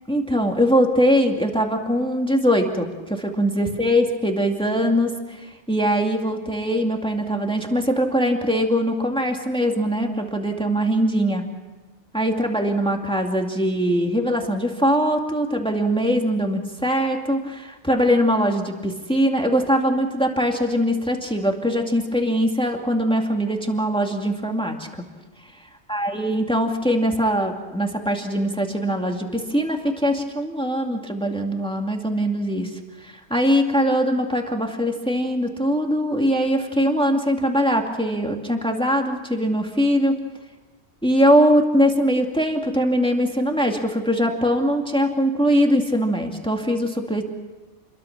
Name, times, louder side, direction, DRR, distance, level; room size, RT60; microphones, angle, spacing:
voice 1, 0.1-11.4 12.1-25.0 25.9-32.7 33.0-40.1 41.0-47.2, equal, 5° left, 2 dB, 2.4 m, -22 dB
29.5 x 22.0 x 6.0 m, 1.2 s
omnidirectional pair, 1.2 m